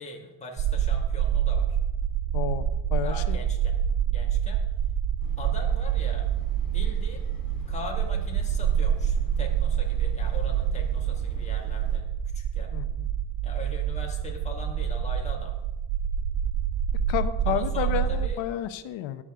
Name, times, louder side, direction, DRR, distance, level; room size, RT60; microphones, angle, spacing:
voice 1, 0.0-1.8 3.0-3.8 4.1-4.6 5.4-6.3 6.7-7.2 7.7-12.0 12.3-12.7 13.4-15.5 17.4-18.4, left 2 dB, 15° left, -1 dB, 1.9 m, -41 dB
sound 1, 0.6-18.3, right 9 dB, 50° right, 0.6 m, -27 dB
voice 2, 2.3-2.6 2.9-3.4 12.7-13.1 17.1-19.2, left 11 dB, 70° left, 11 dB, 1.0 m, -31 dB
sound 2, 5.2-12.0, left 3 dB, 45° left, 3.7 m, -45 dB
13.5 x 9.9 x 3.7 m, 1.0 s
cardioid pair, 120°, 47 cm